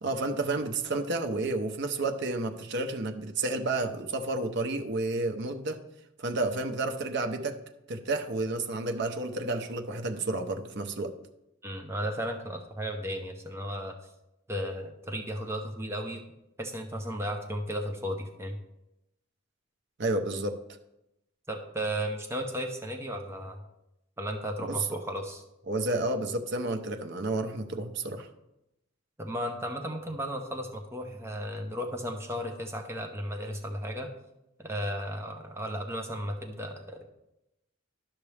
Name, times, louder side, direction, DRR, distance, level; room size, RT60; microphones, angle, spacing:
voice 1, 0.0-5.8 6.2-7.6 7.9-11.2 20.0-20.6 24.6-24.9 25.7-28.3, right 2 dB, 60° right, 5 dB, 0.8 m, -31 dB
voice 2, 11.6-13.9 14.5-16.2 16.6-18.6 21.5-23.6 24.2-25.4 29.2-34.1 34.6-37.1, equal, 15° right, 3 dB, 0.8 m, -34 dB
12.0 x 5.9 x 3.4 m, 0.89 s
head